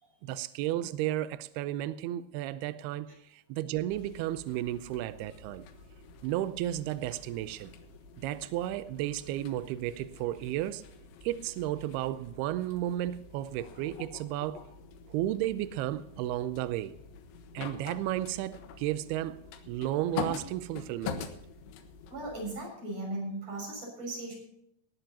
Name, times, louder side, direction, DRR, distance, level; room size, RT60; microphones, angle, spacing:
voice 1, 0.2-5.7 6.2-7.7 8.2-10.8 11.2-14.7 15.1-16.9 17.5-21.3, right 13 dB, 90° right, 2.3 m, -33 dB
sound 1, 3.9-22.5, left 7 dB, 85° left, 3.7 m, -45 dB
voice 2, 22.1-24.3, right 1 dB, 35° right, 7.4 m, -37 dB
18.5 x 15.0 x 2.9 m
omnidirectional pair, 5.3 m